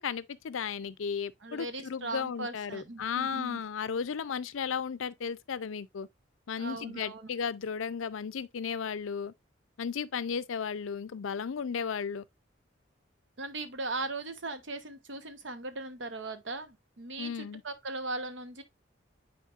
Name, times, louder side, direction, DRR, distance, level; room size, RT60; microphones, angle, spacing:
voice 1, 0.0-6.1 6.5-9.3 9.8-12.2 17.2-17.6, left 6 dB, 90° left, 0.5 m, -34 dB
voice 2, 1.4-3.6 6.6-7.3 13.4-18.6, right 2 dB, 70° right, 0.9 m, -38 dB
9.3 x 4.3 x 2.4 m
head